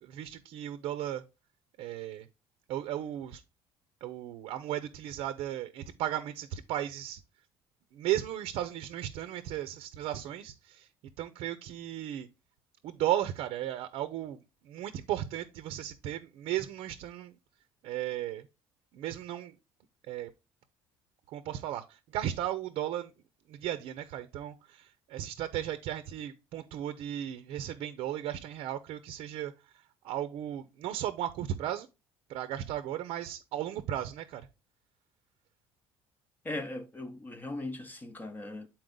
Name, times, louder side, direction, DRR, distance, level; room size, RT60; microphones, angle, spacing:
voice 1, 0.0-1.2 1.8-2.3 2.7-3.4 4.0-7.2 7.9-10.9 11.2-12.3 12.8-14.4 14.6-17.3 17.8-18.5 18.9-19.6 20.1-20.3 21.3-23.1 23.5-31.9 32.3-34.5, right 12 dB, 70° right, 0.6 m, -35 dB
voice 2, 36.4-38.7, left 2 dB, 20° left, 0.7 m, -39 dB
7.8 x 4.4 x 3.8 m
cardioid pair, 135°, 10 cm